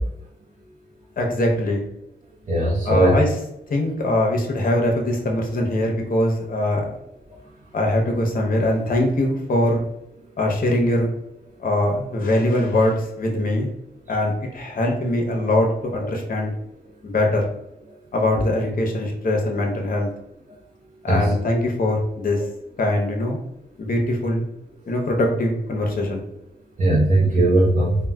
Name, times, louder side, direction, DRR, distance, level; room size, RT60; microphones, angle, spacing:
voice 1, 1.2-1.8 2.8-3.4 3.7-6.9 7.7-9.9 10.4-11.1 11.6-13.7 14.1-16.5 17.0-17.5 18.1-20.1 21.0-22.4 22.8-23.4 23.8-24.4 24.9-26.2, left 1 dB, 55° left, 1 dB, 0.7 m, -22 dB
voice 2, 2.5-3.2 21.1-21.2 26.8-28.0, right 2 dB, 45° right, -6 dB, 0.6 m, -18 dB
3.7 x 2.1 x 2.2 m, 0.82 s
wide cardioid pair, 90°, 18 cm